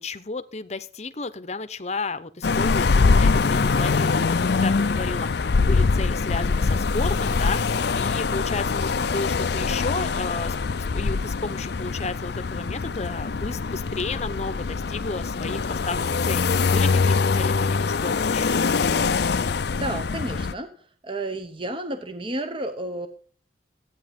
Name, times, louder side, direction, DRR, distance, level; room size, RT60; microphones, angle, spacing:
voice 1, 0.0-7.6 7.9-18.5, left 3 dB, 35° left, 12 dB, 0.8 m, -33 dB
sound 1, 2.4-20.5, left 4 dB, 60° left, 0.5 m, -23 dB
voice 2, 19.4-23.1, right 1 dB, 25° right, 8 dB, 0.9 m, -32 dB
14.5 x 9.1 x 5.2 m, 0.43 s
head